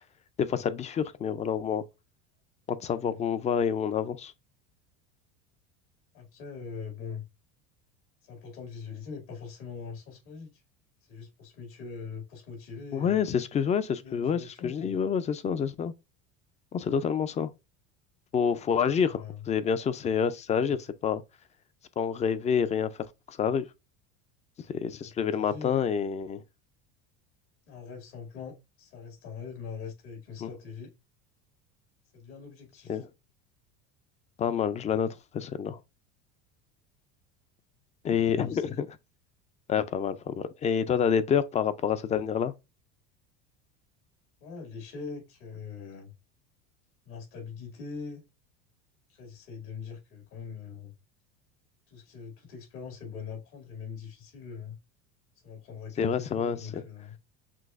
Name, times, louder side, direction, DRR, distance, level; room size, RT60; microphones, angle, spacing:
voice 1, 0.4-1.8 2.7-4.3 12.9-15.9 16.7-17.5 18.3-21.2 22.0-23.7 24.8-26.4 30.4-30.5 32.9-33.1 34.4-35.1 35.3-35.8 38.0-39.0 39.7-42.5 56.0-56.8, left 7 dB, 20° left, 0.3 m, -28 dB
voice 2, 3.0-3.3 6.1-7.2 8.2-10.6 11.1-13.2 14.0-14.9 18.8-19.4 25.0-25.8 27.7-30.9 32.1-33.0 38.2-38.8 44.4-46.1 47.1-48.2 49.1-50.9 51.9-54.8 55.4-57.2, left 5 dB, 80° left, 2.3 m, -42 dB
6.1 x 2.5 x 2.4 m
supercardioid pair, 115°, 33 cm